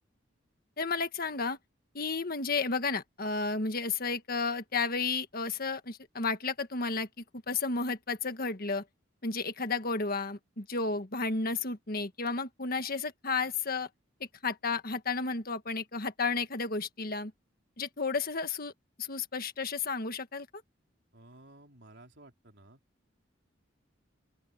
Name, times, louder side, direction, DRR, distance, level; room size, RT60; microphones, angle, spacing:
voice 1, 0.8-1.6 1.9-7.1 7.5-8.8 9.2-13.9 14.4-17.3 17.8-18.7 19.0-20.5, left 4 dB, 50° left, 1.6 m, -32 dB
voice 2, 21.1-22.8, right 1 dB, 65° right, 4.6 m, -55 dB
open air
head